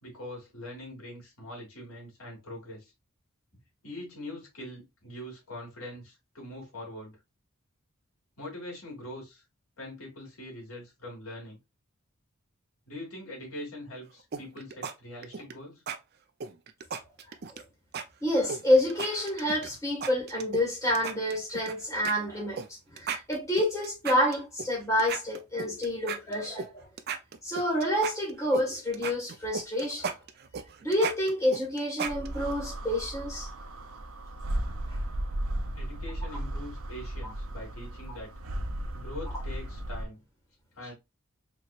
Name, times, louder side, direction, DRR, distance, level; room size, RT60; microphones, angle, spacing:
voice 1, 0.0-2.9 3.8-7.2 8.4-9.4 9.8-11.6 12.9-15.8 35.7-38.3 38.9-40.2 40.8-40.9, left 1 dB, 85° left, 2.6 m, -43 dB
sound 1, 14.3-14.9 15.2-15.5 15.9-16.0 16.4-17.6 17.9-18.0 18.5-19.7 20.0-20.6 20.9-21.7 22.0-22.1 22.6-22.7 23.0-24.7 25.0-26.7 27.0-28.6 28.9-32.5, right 6 dB, 45° right, 0.4 m, -35 dB
voice 2, 18.2-22.6 22.9-26.9 27.4-30.1 30.8-33.5 38.1-38.2, left 1 dB, 15° left, 1.6 m, -28 dB
sound 2, 32.1-40.1, right 1 dB, 80° right, 0.7 m, -35 dB
4.5 x 3.0 x 2.4 m
head